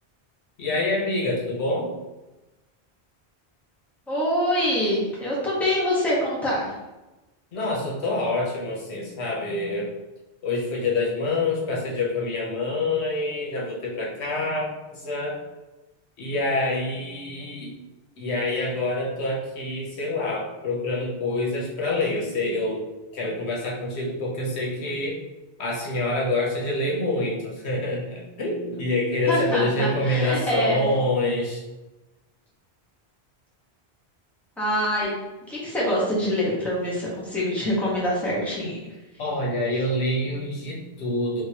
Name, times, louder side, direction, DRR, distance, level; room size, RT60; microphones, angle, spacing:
voice 1, 0.6-1.9 7.5-9.9 10.4-15.4 16.2-17.7 18.2-22.8 23.1-25.2 25.6-31.6 39.2-41.4, left 2 dB, 85° left, -2 dB, 1.1 m, -26 dB
voice 2, 4.1-6.7 29.3-30.9 34.6-35.1 35.5-38.9, equal, ahead, -7 dB, 0.9 m, -25 dB
3.6 x 2.6 x 2.7 m, 1.1 s
omnidirectional pair, 1.1 m